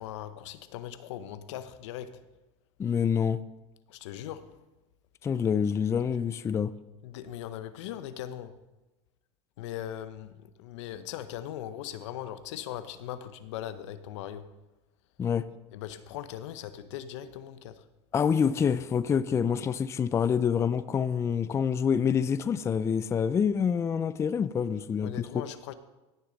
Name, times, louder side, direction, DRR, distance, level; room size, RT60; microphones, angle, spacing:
voice 1, 0.0-2.2 3.9-4.6 7.0-8.6 9.6-14.5 15.7-17.8 25.0-25.7, left 11 dB, 80° left, 0.8 m, -39 dB
voice 2, 2.8-3.4 5.2-6.7 15.2-15.5 18.1-25.3, left 7 dB, 20° left, 0.4 m, -27 dB
16.5 x 6.6 x 3.9 m
supercardioid pair, 120°, 15 cm